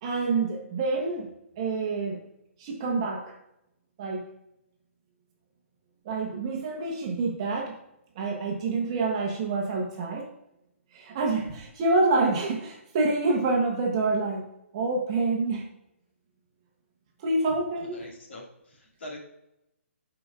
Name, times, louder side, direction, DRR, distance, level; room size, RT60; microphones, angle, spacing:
voice 1, 0.0-1.3 1.6-2.2 2.6-3.3 4.0-4.2 6.0-7.7 8.2-10.3 10.9-14.5 14.7-15.6 17.2-18.0, right 3 dB, 25° right, 0 dB, 1.0 m, -27 dB
voice 2, 17.8-19.2, left 1 dB, 55° left, -1 dB, 2.3 m, -43 dB
12.5 x 4.9 x 2.4 m, 0.85 s
hypercardioid pair, 170°, 7 cm